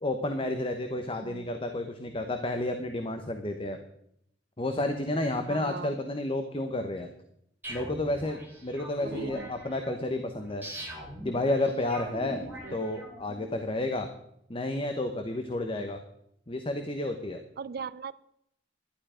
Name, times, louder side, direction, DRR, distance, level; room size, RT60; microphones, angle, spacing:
voice 1, 0.0-3.8 4.6-7.1 7.7-10.6 11.2-12.4 12.7-14.1 14.5-16.0 16.5-17.4, left 1 dB, 30° left, 6 dB, 1.0 m, -31 dB
voice 2, 0.9-1.5 5.5-6.0 9.0-9.5 12.6-12.8 15.6-16.0 17.6-18.2, right 5 dB, 55° right, 17 dB, 0.4 m, -40 dB
sound 1, 7.6-13.4, equal, 10° right, 3.7 m, -42 dB
11.5 x 11.5 x 5.0 m, 0.72 s
head